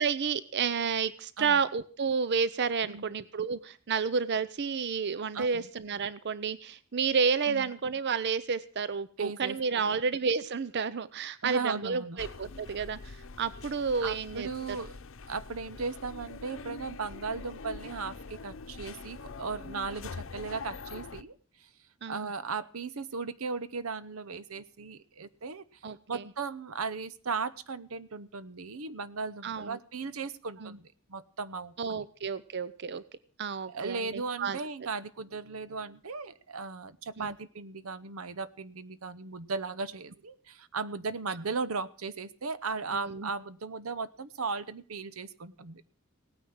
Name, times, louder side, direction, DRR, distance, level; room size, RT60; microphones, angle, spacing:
voice 1, 0.0-13.1 13.4-14.8 22.0-22.3 25.8-26.2 29.4-29.8 30.6-30.8 31.8-33.0 33.4-34.6 37.2-37.3 42.9-43.3, right 5 dB, 55° right, 17 dB, 0.6 m, -31 dB
voice 2, 5.3-5.7 7.5-7.7 9.2-10.1 11.4-12.2 14.0-15.0 15.3-21.7 22.1-25.6 26.1-30.8 31.1-32.0 33.7-45.8, right 4 dB, 85° right, 15 dB, 0.9 m, -37 dB
sound 1, 12.2-21.2, left 4 dB, 65° left, 0.8 m, -44 dB
17.5 x 9.4 x 6.3 m, 0.42 s
head